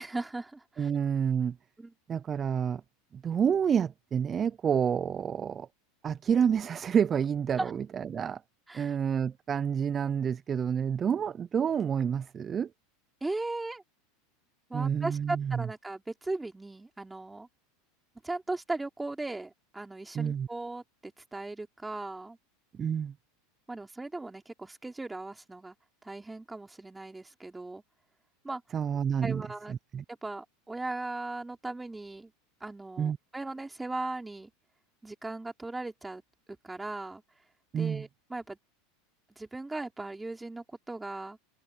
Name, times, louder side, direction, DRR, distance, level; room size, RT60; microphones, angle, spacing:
voice 1, 0.0-0.9 1.8-1.9 7.6-7.7 8.7-8.9 13.2-13.8 14.7-17.5 18.2-22.4 23.7-25.7 26.0-27.8 28.4-28.6 29.2-29.8 30.1-32.3 32.6-34.5 35.0-36.2 36.5-37.2 37.8-38.6 39.4-41.4, right 2 dB, 10° right, 3.5 m, -38 dB
voice 2, 0.8-1.6 2.1-2.8 3.1-5.7 6.0-8.4 8.7-12.7 14.7-15.7 20.1-20.5 22.7-23.1 28.7-29.4 29.7-30.0 33.0-33.2 37.7-38.0, right 7 dB, 25° right, 0.4 m, -29 dB
supercardioid pair, 120°, 0 cm